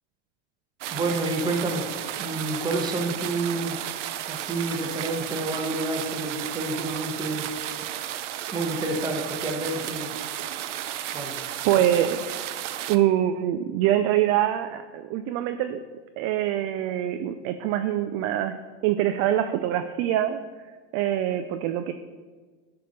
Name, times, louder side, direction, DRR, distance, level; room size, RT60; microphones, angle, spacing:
sound 1, 0.8-13.0, right 11 dB, 85° right, 0.7 m, -33 dB
voice 1, 0.9-1.8 2.2-3.8 4.3-7.5 8.5-10.1 11.1-11.4, right 2 dB, 10° right, 2 dB, 1.2 m, -29 dB
voice 2, 11.6-12.3 12.9-15.8 16.2-18.6 18.8-20.4 20.9-21.9, right 12 dB, 40° right, 8 dB, 0.4 m, -24 dB
10.0 x 3.5 x 6.4 m, 1.4 s
supercardioid pair, 130°, 35 cm